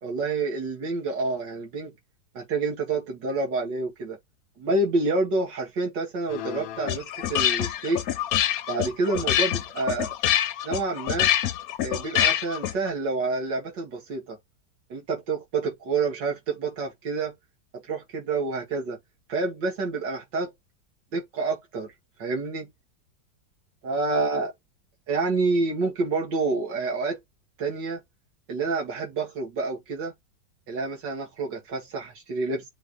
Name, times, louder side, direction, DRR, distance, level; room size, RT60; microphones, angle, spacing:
voice 1, 0.0-1.9 2.3-4.2 4.6-8.0 8.7-10.1 10.6-11.3 11.8-14.4 14.9-17.3 17.9-19.0 19.3-20.5 21.1-21.9 22.2-22.7 23.8-24.5 25.1-27.2 27.6-28.0 28.5-30.1 30.7-32.7, right 3 dB, 85° right, 2.6 m, -28 dB
sound 1, 6.3-12.9, left 11 dB, 65° left, 1.0 m, -26 dB
7.1 x 3.3 x 4.1 m
omnidirectional pair, 1.8 m